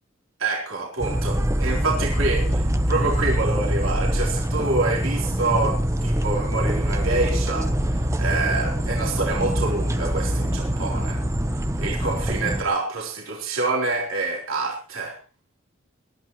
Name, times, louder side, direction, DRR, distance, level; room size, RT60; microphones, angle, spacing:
voice 1, 0.4-11.2 11.8-15.2, right 3 dB, 75° right, -2 dB, 3.7 m, -27 dB
sound 1, 1.0-12.6, equal, 15° right, 1.0 m, -24 dB
22.5 x 12.5 x 3.1 m, 0.34 s
head